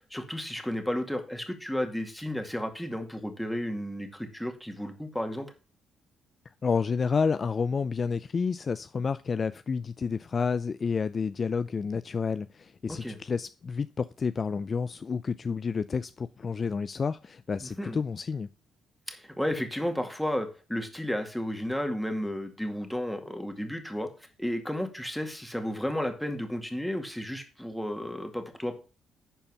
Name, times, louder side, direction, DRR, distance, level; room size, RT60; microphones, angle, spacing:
voice 1, 0.1-5.5 12.9-13.2 17.6-18.0 19.1-24.1 24.4-28.8, equal, 5° left, 2.1 m, -33 dB
voice 2, 6.6-18.5, left 5 dB, 40° left, 0.4 m, -30 dB
11.0 x 4.5 x 5.6 m
cardioid pair, 90°, 0 cm